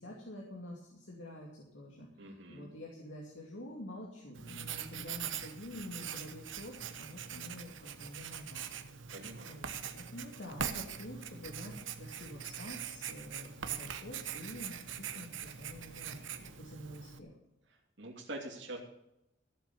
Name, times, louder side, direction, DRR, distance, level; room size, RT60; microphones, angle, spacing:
voice 1, 0.0-9.1 9.5-17.3, left 1 dB, 80° left, -2 dB, 2.4 m, -48 dB
voice 2, 2.2-2.7 9.1-9.5 18.0-18.8, right 1 dB, 65° right, -3 dB, 2.9 m, -44 dB
Writing, 4.4-17.2, right 8 dB, 90° right, 1.1 m, -42 dB
14.5 x 7.3 x 7.1 m, 0.87 s
head